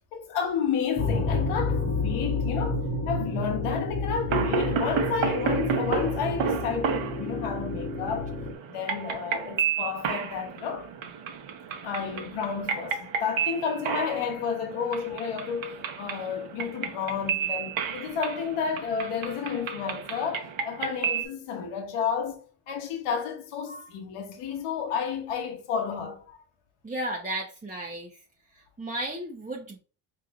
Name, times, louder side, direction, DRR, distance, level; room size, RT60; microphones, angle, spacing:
voice 1, 0.1-8.3 8.7-10.9 11.8-22.4 22.7-26.2, left 7 dB, 80° left, 1.2 m, -31 dB
sound 1, 1.0-8.5, left 2 dB, 25° left, 1.2 m, -30 dB
sound 2, 4.3-21.3, right 6 dB, 65° right, 1.1 m, -32 dB
voice 2, 26.8-28.2 28.8-29.8, right 1 dB, 15° right, 0.9 m, -34 dB
4.8 x 3.0 x 2.4 m
supercardioid pair, 75°, 50 cm